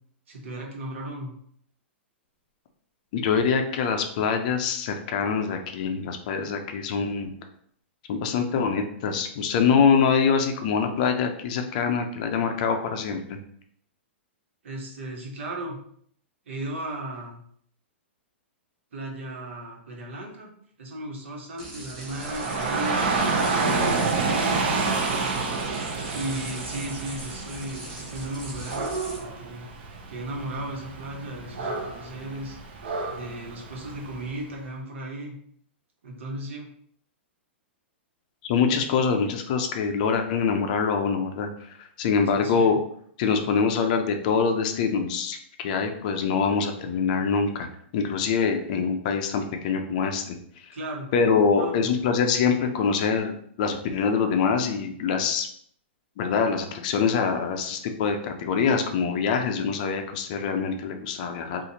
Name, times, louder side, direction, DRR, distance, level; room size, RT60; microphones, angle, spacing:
voice 1, 0.3-1.3 14.6-15.8 16.5-17.4 18.9-20.5 20.8-23.1 23.6-25.3 26.1-29.7 30.1-32.6 33.0-35.4 36.0-36.7 42.3-42.7 50.7-51.1 51.5-51.9, right 1 dB, 85° right, -1 dB, 1.1 m, -35 dB
voice 2, 3.1-7.3 8.1-13.4 38.4-41.7 42.0-42.8 43.2-47.7 47.9-50.7 51.1-55.5 56.2-61.6, left 6 dB, 40° left, 5 dB, 0.4 m, -24 dB
sound 1, 21.6-29.2, right 2 dB, 30° right, 1.4 m, -40 dB
Dog / Rain, 22.1-34.3, right 4 dB, 55° right, 0.6 m, -29 dB
4.1 x 2.4 x 2.8 m, 0.63 s
hypercardioid pair, 165°, 7 cm